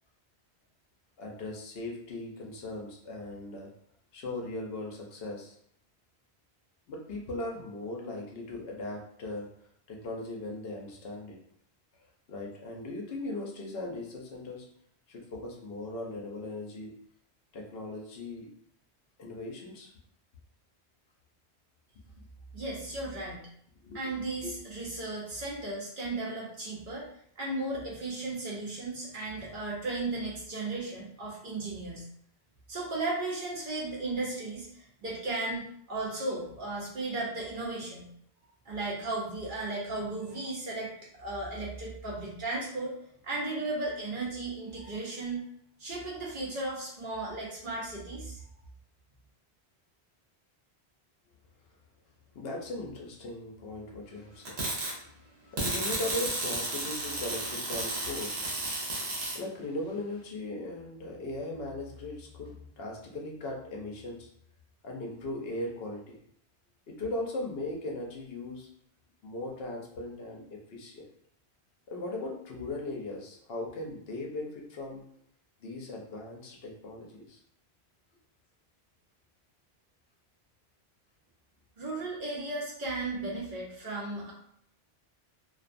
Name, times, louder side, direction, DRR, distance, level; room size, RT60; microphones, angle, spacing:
voice 1, 1.2-3.7 4.1-5.6 6.9-9.5 9.9-11.4 12.3-14.7 15.1-16.9 17.5-18.5 19.2-19.9 23.8-24.1 24.4-24.6 52.3-54.6 55.5-58.4 59.3-64.3 64.8-66.2 66.9-68.7 69.2-71.1 71.9-75.0 75.6-77.4, left 2 dB, 70° left, -1 dB, 0.8 m, -38 dB
voice 2, 22.5-23.5 23.9-27.1 27.4-32.0 32.7-38.1 38.7-40.9 41.2-42.9 43.2-45.4 45.8-48.4 81.8-84.3, right 2 dB, 55° right, -5 dB, 0.9 m, -35 dB
sound 1, 54.4-54.9 55.6-59.4, right 2 dB, 75° right, 1.1 m, -33 dB
2.5 x 2.2 x 2.5 m, 0.67 s
omnidirectional pair, 1.1 m